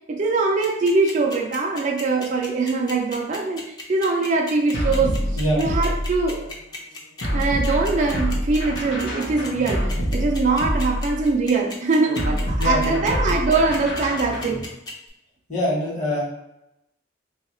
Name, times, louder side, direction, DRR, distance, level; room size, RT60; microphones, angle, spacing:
voice 1, 0.1-5.2 5.6-6.5 7.3-14.6, right 3 dB, 40° right, 0 dB, 0.4 m, -22 dB
sound 1, 0.6-15.1, left 2 dB, 20° left, 0.5 m, -36 dB
sound 2, 4.7-6.5 7.2-11.4 12.2-14.6, equal, 60° left, 0.7 m, -26 dB
voice 2, 12.6-13.2 15.5-16.2, equal, 40° left, -4 dB, 1.1 m, -24 dB
2.8 x 2.3 x 4.1 m, 0.87 s
head